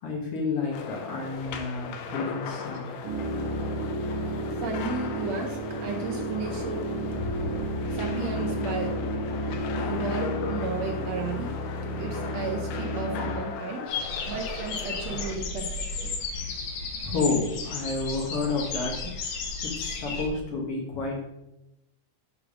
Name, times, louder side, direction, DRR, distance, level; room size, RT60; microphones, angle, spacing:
voice 1, 0.0-2.9 7.4-7.5 13.9-14.2 15.5-15.7 16.1-19.1 19.6-21.3, left 3 dB, 55° left, -1 dB, 2.2 m, -31 dB
sound 1, 0.7-15.4, left 5 dB, 90° left, 2.3 m, -38 dB
sound 2, 3.0-13.3, right 1 dB, 50° right, 2.2 m, -31 dB
voice 2, 4.5-6.9 7.9-8.9 9.8-11.5 12.0-14.0 14.2-16.1, right 4 dB, 70° right, 3 dB, 1.8 m, -34 dB
sound 3, 13.9-20.3, left 4 dB, 75° left, 2.4 m, -34 dB
7.0 x 4.7 x 6.1 m, 0.91 s
omnidirectional pair, 3.5 m